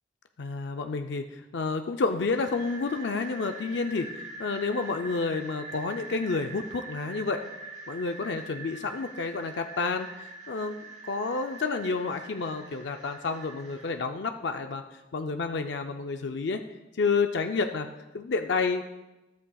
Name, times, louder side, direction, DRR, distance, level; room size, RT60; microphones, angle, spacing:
voice 1, 0.4-7.4 7.9-10.8 11.0-16.6 16.9-17.9 18.1-18.8, left 4 dB, 70° left, 6 dB, 0.5 m, -30 dB
sound 1, 2.3-13.9, right 3 dB, 45° right, 2.4 m, -44 dB
13.5 x 13.0 x 2.3 m, 1.0 s
head